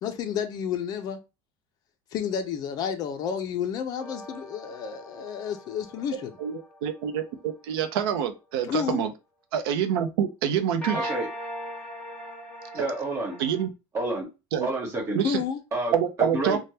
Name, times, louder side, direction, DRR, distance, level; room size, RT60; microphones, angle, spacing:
voice 1, 0.0-1.2 2.1-6.3 8.7-9.0 15.2-15.6, left 8 dB, 35° left, 0.5 m, -30 dB
sound 1, 4.0-7.5 10.8-13.7, equal, 10° left, 0.8 m, -39 dB
voice 2, 6.4-9.1 9.5-11.1 12.7-12.8 13.4-13.7 14.5-14.7 15.1-15.4 15.9-16.6, right 8 dB, 90° right, 0.6 m, -26 dB
voice 3, 10.9-11.3 12.7-13.4 13.9-14.3 14.6-15.2 15.7-15.9 16.3-16.6, right 2 dB, 25° right, 1.2 m, -29 dB
3.3 x 2.2 x 2.7 m
cardioid pair, 170°, 12 cm